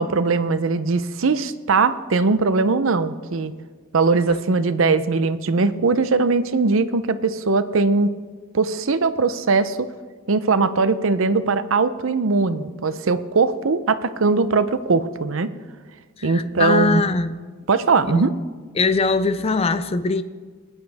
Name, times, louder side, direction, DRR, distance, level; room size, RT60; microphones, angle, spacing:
voice 1, 0.0-3.5 3.9-8.1 8.5-9.9 10.3-15.5 16.2-17.0 17.7-18.3, right 4 dB, 65° right, 0.6 m, -20 dB
voice 2, 16.2-17.3 18.1-18.3 18.8-20.2, left 3 dB, 30° left, 0.5 m, -21 dB
20.0 x 10.0 x 3.5 m
head